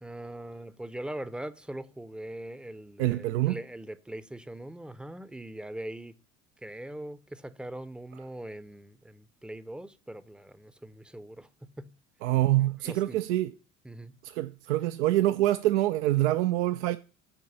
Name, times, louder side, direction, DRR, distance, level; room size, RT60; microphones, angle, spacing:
voice 1, 0.0-6.1 6.6-11.9 12.8-13.2 13.8-14.1, right 1 dB, 5° right, 0.6 m, -41 dB
voice 2, 3.0-3.6 12.2-13.5 14.4-17.0, right 15 dB, 65° right, 0.5 m, -25 dB
9.7 x 4.6 x 6.9 m
figure-of-eight pair, 60°, 37 cm